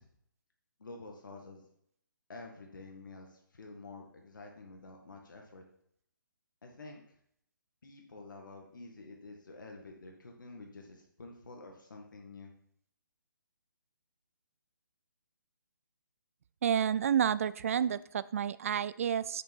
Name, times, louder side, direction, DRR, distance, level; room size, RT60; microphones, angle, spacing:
voice 1, 0.8-1.6 2.3-5.6 6.6-7.0 7.8-12.5, left 3 dB, 65° left, 1 dB, 1.9 m, -49 dB
voice 2, 16.6-19.4, right 8 dB, 40° right, 18 dB, 0.3 m, -30 dB
8.3 x 6.8 x 4.5 m, 0.70 s
figure-of-eight pair, 140°, 11 cm